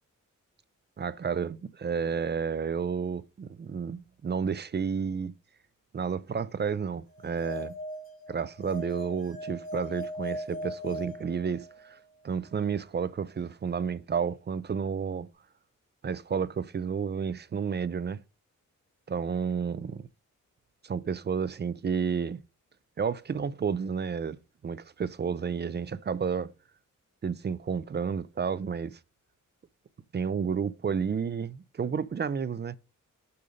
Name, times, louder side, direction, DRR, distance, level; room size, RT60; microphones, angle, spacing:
voice 1, 1.0-5.3 5.9-7.7 8.3-12.0 12.2-15.3 16.0-18.2 19.1-20.1 20.8-22.4 23.0-24.4 24.6-26.5 27.2-29.0 30.1-32.8, right 6 dB, 35° right, 0.4 m, -31 dB
sound 1, 7.2-12.0, equal, 40° left, 3.5 m, -39 dB
6.8 x 5.2 x 5.0 m
wide cardioid pair, 165°, 32 cm